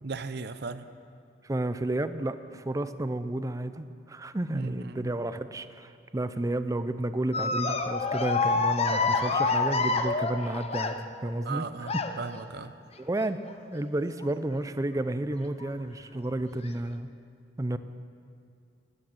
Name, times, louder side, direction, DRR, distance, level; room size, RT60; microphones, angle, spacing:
voice 1, 0.0-0.8 4.5-5.1 11.4-12.7, right 4 dB, 60° right, 12 dB, 0.6 m, -37 dB
voice 2, 1.4-11.7 11.9-12.0 13.0-13.4 13.7-17.1 17.6-17.8, right 1 dB, 20° right, 12 dB, 0.5 m, -31 dB
sound 1, 7.3-11.3 11.8-12.4 13.4-13.8 14.2-14.3 15.6-15.7 16.5-16.7, left 4 dB, 35° left, 0.7 m, -28 dB
13.0 x 9.0 x 8.8 m, 2.4 s
head